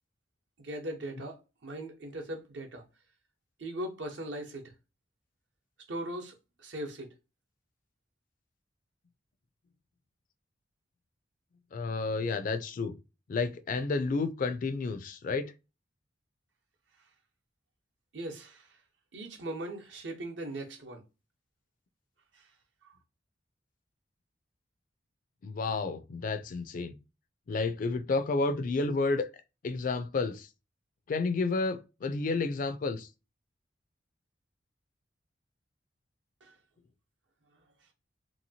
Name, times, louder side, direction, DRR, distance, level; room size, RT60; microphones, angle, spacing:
voice 1, 0.6-2.8 3.6-4.6 5.9-7.1 18.1-18.7 19.1-21.0 36.4-36.5, right 1 dB, 70° right, 0.8 m, -39 dB
voice 2, 11.7-13.0 13.3-15.5 25.4-26.9 27.5-29.3 29.6-30.5 31.1-33.1, left 3 dB, 45° left, 0.3 m, -31 dB
2.9 x 2.8 x 2.7 m
head